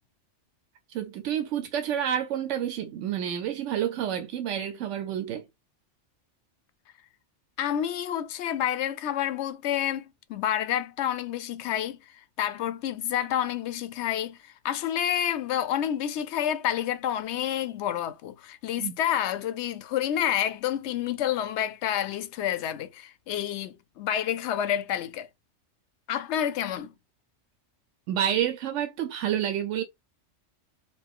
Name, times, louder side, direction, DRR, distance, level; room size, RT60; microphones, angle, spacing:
voice 1, 0.9-5.4 18.8-18.9 28.1-29.8, right 10 dB, 85° right, 0.9 m, -29 dB
voice 2, 7.6-12.0 12.4-14.4 14.6-25.3 26.1-26.9, left 10 dB, 75° left, 0.8 m, -29 dB
4.0 x 2.0 x 3.5 m
omnidirectional pair, 1.2 m